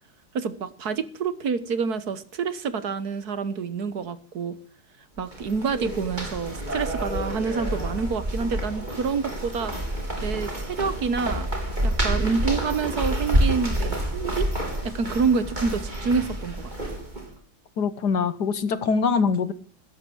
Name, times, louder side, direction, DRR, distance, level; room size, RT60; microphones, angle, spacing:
voice 1, 0.3-4.5 5.2-9.7 10.2-11.5 11.8-14.5 14.8-16.9, right 5 dB, 55° right, 1.6 m, -27 dB
sound 1, 5.2-17.3, right 1 dB, 25° right, 4.1 m, -28 dB
voice 2, 17.8-19.5, left 5 dB, 60° left, 1.6 m, -23 dB
16.5 x 13.5 x 6.1 m
omnidirectional pair, 2.1 m